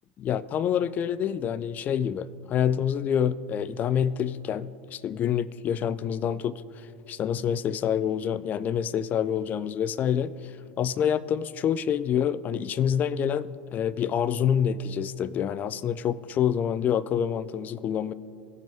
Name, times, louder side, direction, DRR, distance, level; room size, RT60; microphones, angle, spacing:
voice 1, 0.2-6.5 7.1-10.3 10.8-18.1, left 9 dB, 35° left, 17 dB, 0.4 m, -27 dB
18.0 x 7.3 x 2.7 m, 2.6 s
hypercardioid pair, 85°, 5 cm